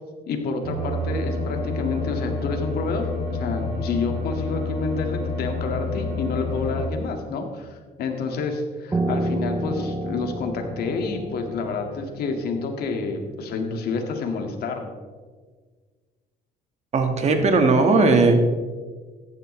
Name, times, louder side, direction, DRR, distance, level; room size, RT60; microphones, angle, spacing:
voice 1, 0.3-14.9, left 4 dB, 65° left, 3 dB, 1.9 m, -29 dB
sound 1, 0.6-6.9, left 2 dB, 70° right, 3.6 m, -28 dB
Piano, 8.9-14.2, right 1 dB, 15° right, 0.8 m, -30 dB
voice 2, 16.9-18.3, right 3 dB, 40° right, 5 dB, 1.7 m, -17 dB
14.5 x 10.5 x 3.3 m, 1.5 s
cardioid pair, 110°, 17 cm